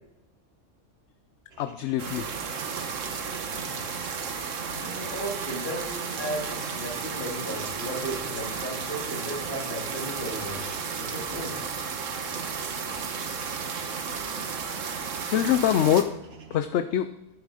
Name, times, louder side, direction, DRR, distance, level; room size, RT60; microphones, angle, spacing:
sound 1, 1.5-16.6, right 5 dB, 55° right, 1.3 m, -53 dB
voice 1, 1.6-2.3 15.3-16.1 16.5-17.1, left 10 dB, 70° left, 10 dB, 0.8 m, -24 dB
sound 2, 2.0-16.0, right 5 dB, 85° right, 1.5 m, -33 dB
voice 2, 4.7-10.7 11.0-11.6, right 1 dB, 40° left, -2 dB, 3.1 m, -35 dB
11.0 x 9.1 x 4.9 m, 0.97 s
omnidirectional pair, 1.3 m